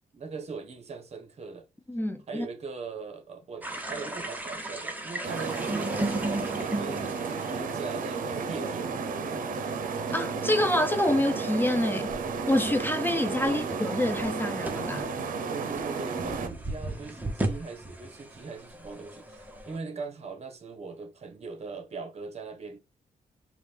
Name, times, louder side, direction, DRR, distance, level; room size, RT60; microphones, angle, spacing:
voice 1, 0.1-1.6 2.3-9.4 13.4-13.6 15.5-22.8, right 4 dB, 45° right, 1.1 m, -41 dB
voice 2, 1.9-2.5 10.1-12.1 12.5-15.1, left 1 dB, 15° left, 0.5 m, -27 dB
sound 1, 3.6-19.8, right 1 dB, 10° right, 0.9 m, -37 dB
sound 2, 5.2-16.5, right 5 dB, 65° right, 0.7 m, -33 dB
5.0 x 2.3 x 3.4 m
cardioid pair, 100°, 15 cm